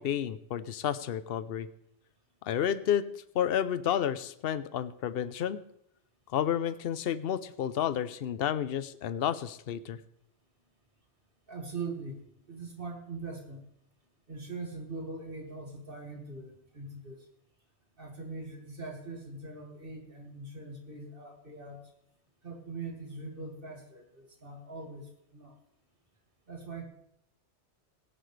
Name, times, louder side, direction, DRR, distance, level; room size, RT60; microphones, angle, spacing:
voice 1, 0.0-1.7 2.5-3.1 3.3-5.6 6.3-10.0, left 9 dB, 60° left, 15 dB, 0.8 m, -31 dB
voice 2, 11.5-12.2 12.5-13.6 14.3-17.3 18.0-21.9 22.4-25.5 26.5-26.8, right 3 dB, 50° right, 2 dB, 2.4 m, -42 dB
18.0 x 10.5 x 3.3 m, 0.77 s
omnidirectional pair, 1.2 m